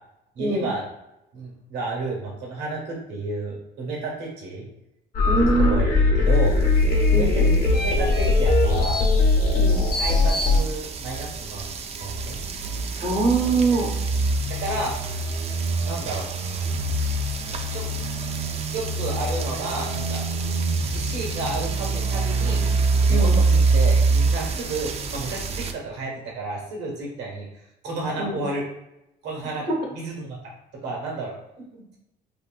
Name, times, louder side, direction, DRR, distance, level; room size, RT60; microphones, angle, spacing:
voice 1, 0.3-0.8 1.3-4.6 5.6-7.4 7.8-9.0 10.0-12.4 14.5-15.0 15.8-16.3 17.5-17.8 18.7-20.2 20.8-22.6 23.0-28.6 29.2-30.4 30.8-31.3, right 2 dB, 85° right, -2 dB, 1.2 m, -32 dB
sound 1, 5.1-10.6, left 3 dB, 55° left, 0.8 m, -19 dB
voice 2, 5.2-5.8 7.1-7.6 9.5-9.8 13.0-13.9 23.1-23.3 28.2-28.4 29.7-29.8, right 3 dB, 65° right, 0 dB, 1.1 m, -23 dB
sound 2, 7.1-25.7, right 3 dB, 40° right, 0.4 m, -25 dB
3.0 x 2.9 x 2.3 m, 0.88 s
cardioid pair, 110°, 17 cm